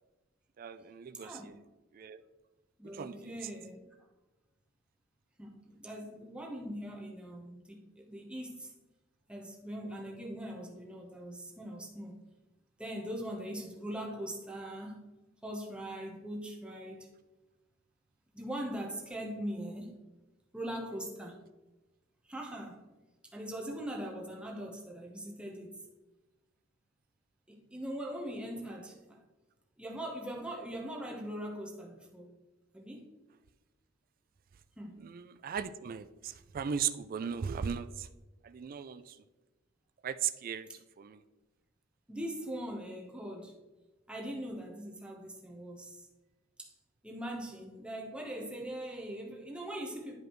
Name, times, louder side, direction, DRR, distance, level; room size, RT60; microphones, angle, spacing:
voice 1, 0.6-1.6 1.9-2.2 2.8-3.3 35.0-38.1 38.4-39.2 40.0-41.2, right 7 dB, 45° right, 0.3 m, -37 dB
voice 2, 1.1-1.5 2.8-3.8 5.4-8.7 9.3-12.2 12.8-15.0 15.4-17.1 18.3-19.9 20.5-21.4 22.2-22.8 23.3-25.8 27.5-29.2 29.8-32.3 32.7-33.1 34.8-35.0 42.1-43.6 44.1-46.1 46.6-46.7 47.0-50.2, right 1 dB, 5° right, 1.0 m, -41 dB
11.0 x 4.9 x 3.1 m
head